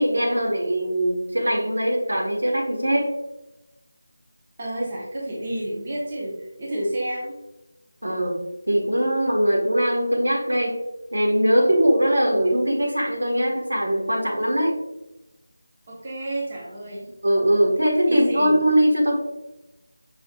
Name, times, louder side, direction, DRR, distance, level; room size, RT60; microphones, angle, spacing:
voice 1, 0.0-3.1 8.0-8.4 8.7-10.8 11.1-14.7 17.2-19.1, equal, 85° right, -1 dB, 1.4 m, -21 dB
voice 2, 4.6-7.4 15.9-17.1 18.1-18.6, right 1 dB, 30° right, -4 dB, 1.0 m, -30 dB
5.5 x 3.1 x 2.4 m, 0.96 s
figure-of-eight pair, 170°, 0 cm